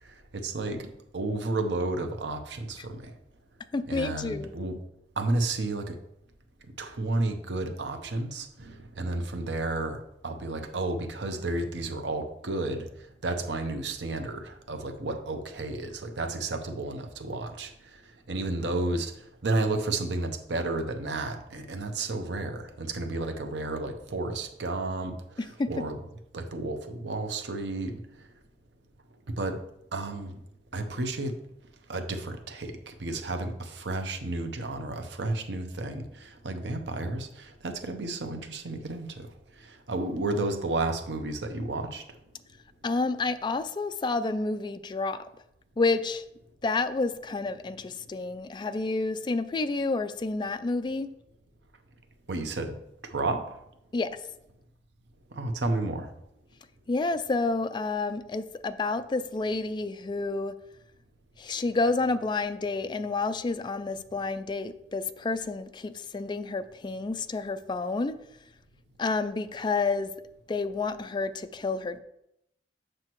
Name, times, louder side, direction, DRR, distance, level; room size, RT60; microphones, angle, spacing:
voice 1, 0.0-0.9 1.1-3.1 3.9-4.8 5.2-6.0 6.8-18.0 18.3-26.0 26.3-28.3 29.3-29.6 29.9-30.4 30.7-31.3 31.9-42.2 52.3-52.7 53.0-53.6 55.3-56.1, right 2 dB, 80° right, 0.8 m, -32 dB
voice 2, 3.7-4.5 25.6-25.7 42.8-45.2 45.8-46.2 46.6-51.1 53.9-54.1 56.9-60.5 61.4-68.1 69.0-70.1 70.5-72.0, left 3 dB, 25° left, 0.3 m, -29 dB
7.7 x 6.4 x 3.0 m
head